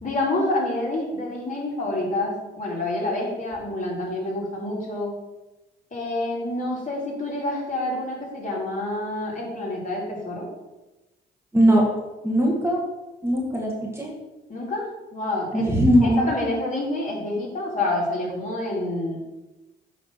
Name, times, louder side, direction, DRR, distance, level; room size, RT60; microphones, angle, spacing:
voice 1, 0.0-5.1 5.9-10.5 14.5-15.7 16.0-19.2, left 2 dB, 40° left, -3 dB, 2.7 m, -28 dB
voice 2, 11.5-11.8 12.2-12.8 13.2-14.1 15.5-16.3, equal, 10° right, -2 dB, 1.7 m, -19 dB
8.3 x 3.4 x 5.8 m, 1.0 s
cardioid pair, 90°, 20 cm